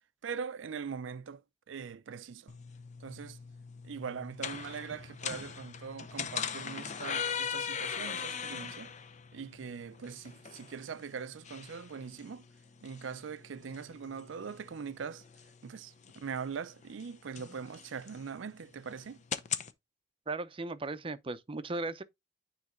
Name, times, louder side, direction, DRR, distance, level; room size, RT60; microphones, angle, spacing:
voice 1, 0.2-1.4 1.7-2.5 3.0-3.4 3.8-8.9 9.3-12.5 12.8-15.2 15.6-19.2, right 6 dB, 85° right, 0.5 m, -41 dB
sound 1, 2.5-19.7, left 7 dB, 40° left, 0.6 m, -41 dB
voice 2, 20.3-22.0, right 2 dB, 30° right, 0.6 m, -37 dB
9.4 x 3.3 x 3.7 m
head